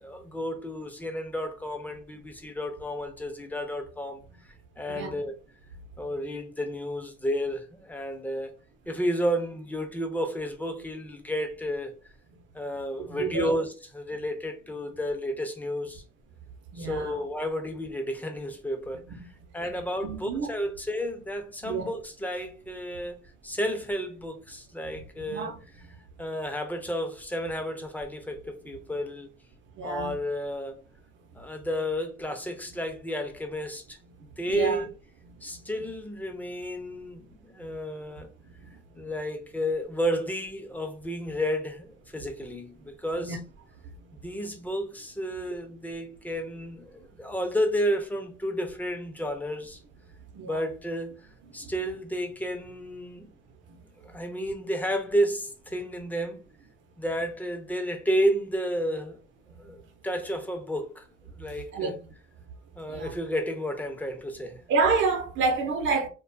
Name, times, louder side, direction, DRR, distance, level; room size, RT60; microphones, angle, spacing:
voice 1, 0.0-4.2 4.8-5.3 6.0-8.5 8.9-12.0 12.5-16.0 16.7-19.2 19.5-25.5 26.2-29.3 29.8-30.8 31.3-34.0 34.4-34.9 35.4-38.3 38.9-43.4 44.1-49.8 50.5-53.3 54.0-56.4 57.0-59.2 59.6-61.1 61.3-61.9 62.8-64.6, equal, 10° left, 0.6 m, -31 dB
voice 2, 13.0-13.5 16.7-17.2 20.0-20.5 21.6-21.9 25.2-25.6 29.8-30.1 34.5-34.8 43.2-43.4 50.3-50.6 51.6-51.7 59.6-59.7 61.7-61.9 62.9-63.1 64.7-66.1, right 4 dB, 70° right, 0.7 m, -28 dB
2.5 x 2.3 x 2.5 m
cardioid pair, 90°, 20 cm